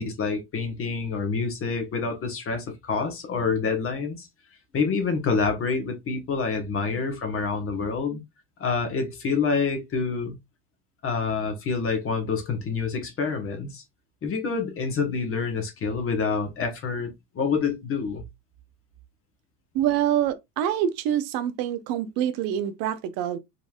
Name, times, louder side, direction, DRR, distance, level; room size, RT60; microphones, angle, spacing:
voice 1, 0.0-4.3 4.7-8.2 8.6-10.4 11.0-13.8 14.2-18.2, left 5 dB, 30° left, 1.3 m, -27 dB
voice 2, 19.7-23.4, right 10 dB, 50° right, 0.8 m, -26 dB
4.1 x 3.3 x 2.4 m
supercardioid pair, 120°, 46 cm